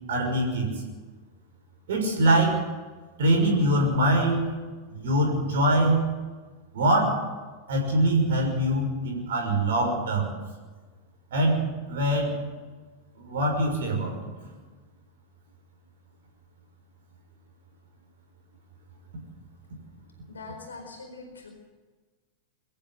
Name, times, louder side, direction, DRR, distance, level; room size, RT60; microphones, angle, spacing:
voice 1, 0.1-0.7 1.9-2.6 3.2-4.5 4.9-6.1 6.7-7.2 7.7-10.3 11.3-12.4 13.2-14.1 14.4-14.5, right 1 dB, 60° right, 2 dB, 6.2 m, -23 dB
voice 2, 20.3-21.5, left 3 dB, 70° left, 4 dB, 4.5 m, -42 dB
23.5 x 14.0 x 7.8 m, 1.4 s
figure-of-eight pair, 90°, 0 cm